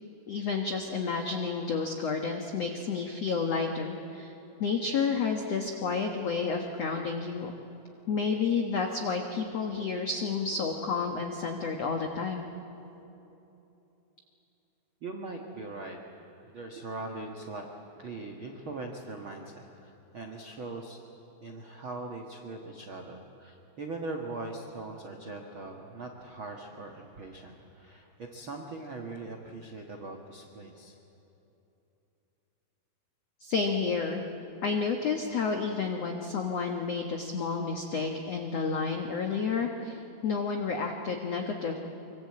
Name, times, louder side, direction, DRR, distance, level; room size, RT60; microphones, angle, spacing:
voice 1, 0.3-4.3 4.6-7.5 8.1-12.5 33.4-34.3 34.6-41.8, left 5 dB, 90° left, 3 dB, 1.4 m, -30 dB
voice 2, 15.0-21.0 21.4-30.9, right 2 dB, 75° right, 2 dB, 1.1 m, -41 dB
25.0 x 24.5 x 8.5 m, 3.0 s
omnidirectional pair, 5.0 m